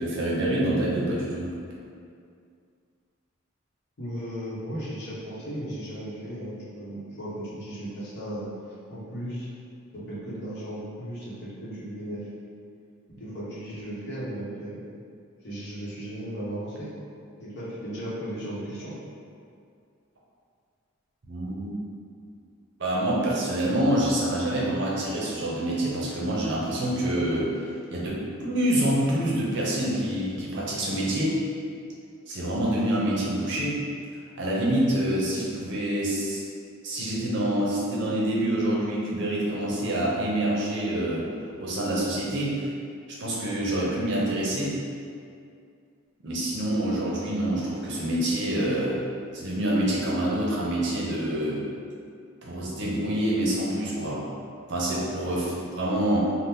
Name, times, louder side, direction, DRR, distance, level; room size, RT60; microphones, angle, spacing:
voice 1, 0.0-1.5 21.3-21.8 22.8-27.5 27.9-31.3 32.3-33.8 34.4-36.4 36.8-41.3 41.6-42.7 43.2-44.8 46.2-49.0 49.3-51.6 52.4-54.2 54.7-56.2, right 1 dB, 60° right, -6 dB, 0.7 m, -26 dB
voice 2, 4.0-8.5 8.9-9.5 9.9-12.3 13.1-15.0 15.4-16.9 17.4-18.9, right 1 dB, 55° left, -8 dB, 0.8 m, -36 dB
2.8 x 2.1 x 3.4 m, 2.3 s
head